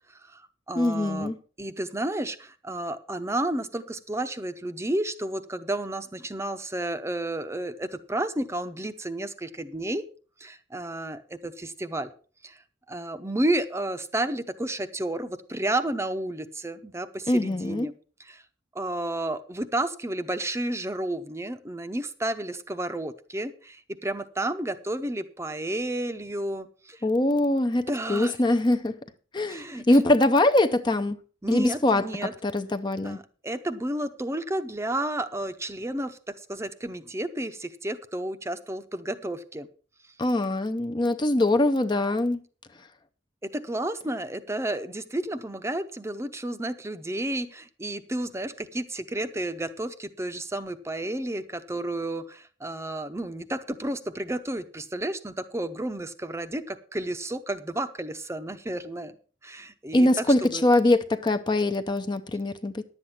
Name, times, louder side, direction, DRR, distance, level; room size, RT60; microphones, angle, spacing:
voice 1, 0.1-1.3 1.6-10.1 10.4-12.1 12.4-12.6 12.9-17.9 18.2-18.4 18.7-27.0 27.9-28.4 29.5-30.0 31.4-32.3 33.0-39.7 43.4-59.1 59.4-60.6, right 1 dB, 15° right, 0.7 m, -31 dB
voice 2, 0.8-1.4 17.3-17.9 27.0-28.9 29.3-31.2 31.5-32.0 32.4-33.2 40.2-42.4 59.9-62.8, left 1 dB, 25° left, 0.6 m, -23 dB
11.0 x 8.0 x 5.8 m
head